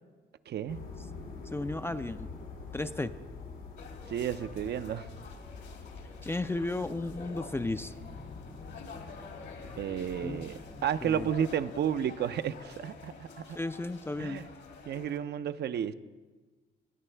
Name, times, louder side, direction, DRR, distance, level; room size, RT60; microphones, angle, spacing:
voice 1, 0.5-0.8 4.1-5.1 9.8-13.3 14.2-14.5 14.9-15.9, right 9 dB, 60° right, 12 dB, 0.5 m, -32 dB
sound 1, 0.7-12.1, left 4 dB, 90° left, 2.3 m, -46 dB
voice 2, 1.5-2.3 2.7-3.1 6.2-7.9 10.2-10.5 11.0-11.3 13.6-14.5, left 2 dB, 10° left, 11 dB, 0.3 m, -34 dB
sound 2, 3.8-15.2, left 5 dB, 65° left, 1.5 m, -49 dB
18.0 x 9.0 x 3.3 m, 1.3 s
cardioid pair, 90°, 20 cm